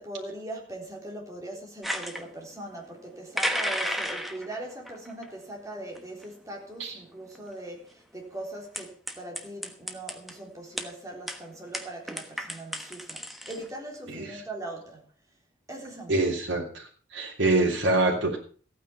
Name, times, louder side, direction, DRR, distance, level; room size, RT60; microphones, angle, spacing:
voice 1, 0.0-15.1 15.7-16.2, right 1 dB, 15° right, 3.8 m, -40 dB
sound 1, 1.8-2.2 3.4-4.6 4.9-5.2 5.9-6.0 6.2-6.3 7.3-7.4 8.7-10.3 10.8-10.9 11.3-11.4 11.7-13.7, equal, ahead, 1.2 m, -32 dB
voice 2, 16.1-16.9 17.1-18.4, right 2 dB, 60° right, 3.4 m, -25 dB
15.0 x 9.2 x 5.8 m
head